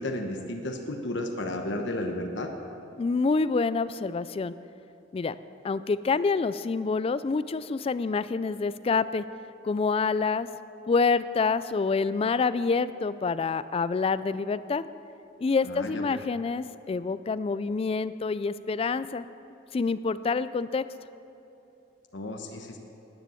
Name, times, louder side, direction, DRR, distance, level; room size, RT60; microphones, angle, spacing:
voice 1, 0.0-2.5 15.6-16.2 22.1-22.8, left 1 dB, 65° left, 3 dB, 1.1 m, -33 dB
voice 2, 3.0-4.5 5.1-5.4 5.6-9.2 9.6-10.5 10.9-14.8 15.4-19.2 19.7-20.9, left 4 dB, 30° left, 15 dB, 0.3 m, -27 dB
10.5 x 10.0 x 7.7 m, 3.0 s
head